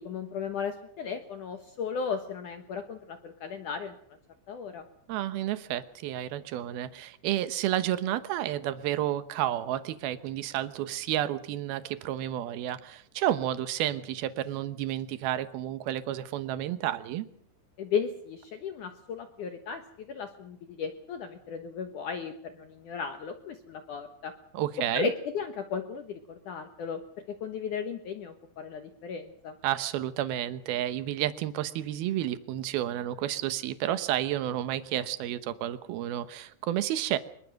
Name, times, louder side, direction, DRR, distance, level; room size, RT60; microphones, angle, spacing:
voice 1, 0.0-4.0 4.5-4.8 17.8-24.3 24.9-27.0 27.3-29.5, left 6 dB, 80° left, 7 dB, 1.8 m, -35 dB
voice 2, 5.1-17.3 24.5-25.1 29.6-37.2, right 12 dB, 70° right, 12 dB, 2.4 m, -31 dB
25.0 x 22.0 x 6.5 m, 0.64 s
omnidirectional pair, 5.7 m